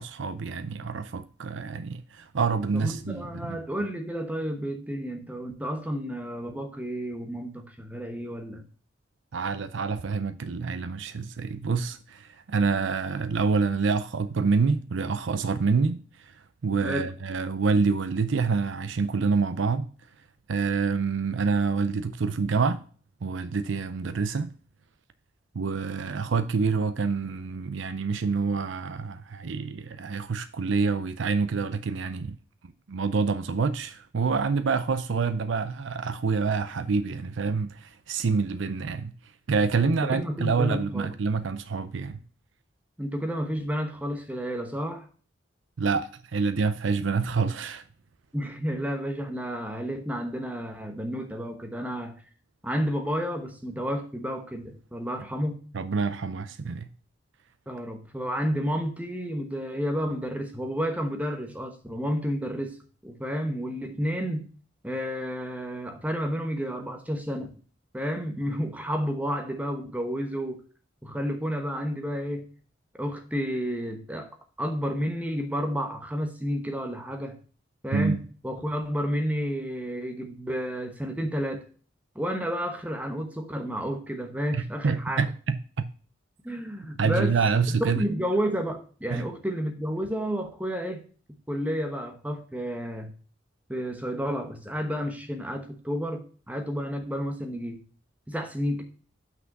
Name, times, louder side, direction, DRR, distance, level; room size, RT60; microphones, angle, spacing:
voice 1, 0.0-3.6 9.3-16.3 16.6-19.9 20.5-22.8 23.2-24.5 25.5-32.4 32.9-39.1 39.5-42.2 45.8-47.8 55.7-56.9 77.9-78.2 84.5-85.8 87.0-88.0 89.1-89.2, right 4 dB, 75° right, 0.5 m, -27 dB
voice 2, 2.7-8.7 16.8-17.1 39.8-41.1 43.0-45.1 48.3-52.2 52.6-55.6 57.7-62.8 63.0-64.5 64.8-67.5 67.9-70.6 71.0-72.5 73.0-74.3 74.6-77.4 77.8-81.7 82.1-85.2 86.4-87.4 87.8-91.0 91.5-93.1 93.7-97.8 98.3-98.8, equal, 10° right, 1.0 m, -31 dB
6.1 x 5.8 x 5.3 m
head